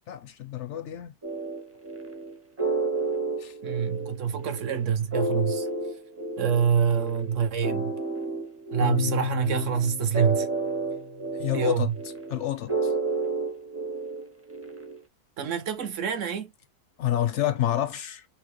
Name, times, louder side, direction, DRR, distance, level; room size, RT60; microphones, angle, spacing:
voice 1, 0.1-1.1 3.4-3.5 11.4-11.9 12.3-12.9 17.0-18.3, left 11 dB, 70° left, 0.7 m, -28 dB
sound 1, 1.2-15.0, right 3 dB, 15° right, 0.6 m, -31 dB
voice 2, 3.6-5.7 6.4-8.0 8.7-10.5 11.5-11.9 15.4-16.5, right 7 dB, 60° right, 1.0 m, -26 dB
sound 2, 8.8-11.4, left 14 dB, 85° left, 1.1 m, -34 dB
5.9 x 2.0 x 3.1 m
omnidirectional pair, 1.6 m